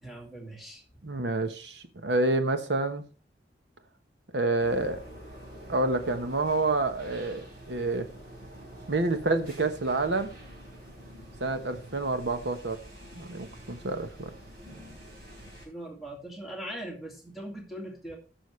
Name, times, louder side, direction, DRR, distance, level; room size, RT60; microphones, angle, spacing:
voice 1, 0.0-0.8 15.6-18.2, right 1 dB, ahead, 2.1 m, -40 dB
voice 2, 1.0-3.0 4.3-5.0 5.7-8.1 8.9-10.3 11.4-12.8 13.2-14.3, right 2 dB, 75° right, 1.1 m, -28 dB
sound 1, 4.6-15.7, right 1 dB, 55° right, 3.9 m, -47 dB
14.5 x 6.2 x 3.2 m
head